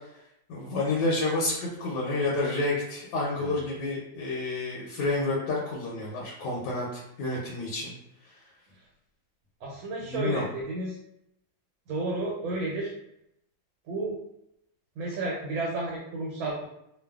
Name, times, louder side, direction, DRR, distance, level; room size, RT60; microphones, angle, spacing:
voice 1, 0.5-7.9 10.1-10.5, left 2 dB, 75° left, -4 dB, 1.1 m, -29 dB
voice 2, 9.6-11.0 11.9-12.9 13.9-14.1 15.0-16.7, right 2 dB, 80° right, -3 dB, 1.4 m, -32 dB
3.1 x 2.2 x 2.3 m, 0.79 s
omnidirectional pair, 2.2 m